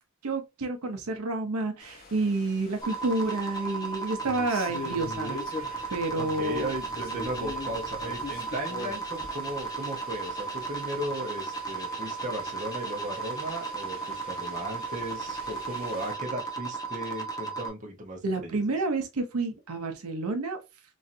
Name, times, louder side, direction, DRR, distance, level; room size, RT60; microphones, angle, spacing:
voice 1, 0.2-5.4 5.9-6.7 18.2-20.6, right 2 dB, 80° right, 0.6 m, -29 dB
sound 1, 1.8-16.1, left 2 dB, 40° left, 0.9 m, -43 dB
sound 2, 2.8-17.7, right 4 dB, 15° left, 0.5 m, -35 dB
voice 2, 6.1-18.6, right 1 dB, 35° right, 0.7 m, -36 dB
3.1 x 2.6 x 2.5 m
head